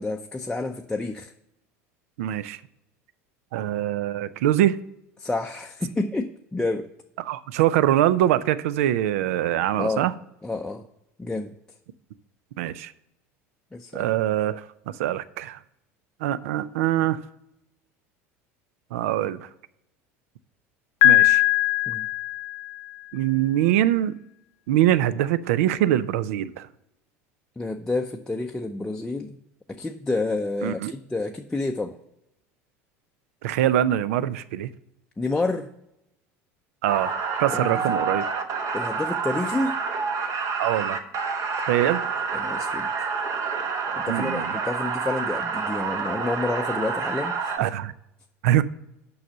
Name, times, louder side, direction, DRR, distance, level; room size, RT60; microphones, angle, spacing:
voice 1, 0.0-1.3 5.2-6.9 9.8-10.1 10.4-10.9 11.2-11.5 13.7-14.1 21.9-22.1 27.6-29.4 29.7-32.0 35.2-35.7 37.5-37.8 38.7-39.8 42.3-42.9 43.9-47.7, left 2 dB, 10° left, 2 dB, 0.5 m, -29 dB
voice 2, 2.2-2.6 3.5-4.8 7.2-10.1 12.6-12.9 13.9-15.6 16.2-17.2 18.9-19.5 21.0-21.4 23.1-24.2 24.7-26.7 30.6-30.9 33.4-34.7 36.8-38.2 40.6-41.0 41.6-42.0 44.1-44.5 47.6-47.9 48.4-48.6, right 12 dB, 75° right, 16 dB, 0.4 m, -23 dB
Piano, 21.0-22.9, left 17 dB, 65° left, 0.5 m, -20 dB
sound 1, 36.9-47.6, right 5 dB, 45° right, 1.1 m, -28 dB
6.4 x 5.5 x 5.5 m, 0.84 s
hypercardioid pair, 85°, 8 cm